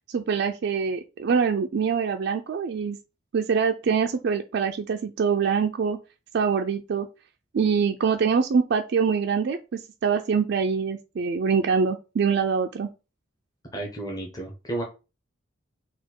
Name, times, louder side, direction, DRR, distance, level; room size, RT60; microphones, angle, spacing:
voice 1, 0.1-3.0 3.3-6.0 6.3-7.1 7.5-12.9, right 6 dB, 55° right, 5 dB, 0.3 m, -24 dB
voice 2, 13.7-14.8, right 2 dB, 20° left, 0 dB, 0.8 m, -32 dB
4.3 x 2.3 x 4.3 m, 0.30 s
head